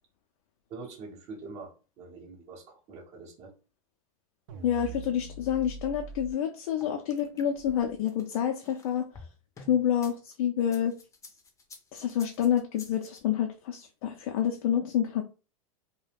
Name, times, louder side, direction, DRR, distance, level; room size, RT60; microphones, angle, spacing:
voice 1, 0.7-3.5, right 3 dB, 40° right, -2 dB, 0.8 m, -44 dB
sound 1, 4.5-6.3, right 2 dB, 70° right, 0.5 m, -42 dB
voice 2, 4.6-9.0 9.7-11.0 11.9-15.2, left 9 dB, 70° left, 4 dB, 0.5 m, -28 dB
sound 2, 6.8-10.1 10.6-13.2, left 3 dB, 15° left, 0.6 m, -50 dB
2.3 x 2.1 x 3.3 m, 0.34 s
supercardioid pair, 125°, 18 cm